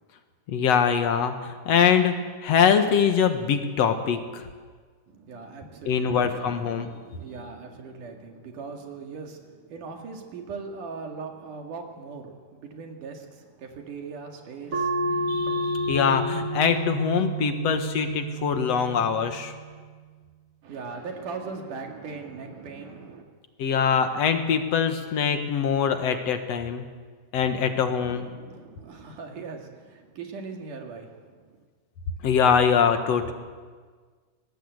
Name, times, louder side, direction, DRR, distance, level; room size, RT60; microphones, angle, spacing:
voice 1, 0.5-4.4 5.9-6.9 15.3-19.5 23.6-26.8 27.3-28.3 32.2-33.3, left 7 dB, 55° left, 7 dB, 2.3 m, -23 dB
voice 2, 5.1-15.2 20.6-23.3 28.0-31.5, right 4 dB, 70° right, 3 dB, 3.6 m, -40 dB
sound 1, 14.7-19.8, right 1 dB, 35° right, 1.2 m, -30 dB
23.5 x 19.0 x 8.1 m, 1.5 s
omnidirectional pair, 3.8 m